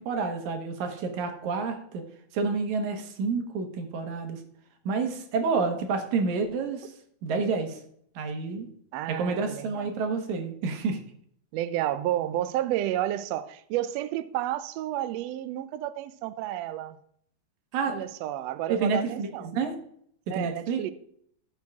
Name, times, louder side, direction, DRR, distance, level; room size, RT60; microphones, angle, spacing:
voice 1, 0.0-2.0 2.3-4.4 4.9-6.9 7.2-7.8 8.2-8.7 9.1-11.0 17.7-18.0 18.7-19.7 20.3-20.9, right 4 dB, 70° right, 2.6 m, -29 dB
voice 2, 8.9-9.9 11.5-17.0 17.9-19.5 20.3-20.9, right 13 dB, 90° right, 1.4 m, -31 dB
14.5 x 6.1 x 3.5 m
omnidirectional pair, 3.6 m